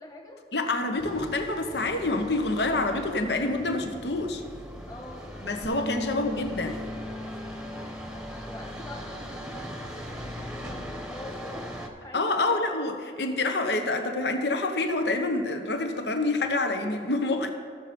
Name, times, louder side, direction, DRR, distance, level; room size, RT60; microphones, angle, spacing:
voice 1, 0.0-0.4 4.9-5.3 6.1-6.2 7.9-11.7 12.0-12.7, left 1 dB, 20° left, 0 dB, 1.4 m, -45 dB
voice 2, 0.5-4.4 5.4-6.8 12.1-17.5, left 2 dB, 70° left, 6 dB, 1.0 m, -27 dB
sound 1, 1.0-11.9, equal, 5° right, 0.9 m, -40 dB
Bass guitar, 5.6-10.0 10.3-11.9, left 1 dB, 90° left, 1.9 m, -40 dB
15.0 x 7.0 x 5.2 m, 2.2 s
head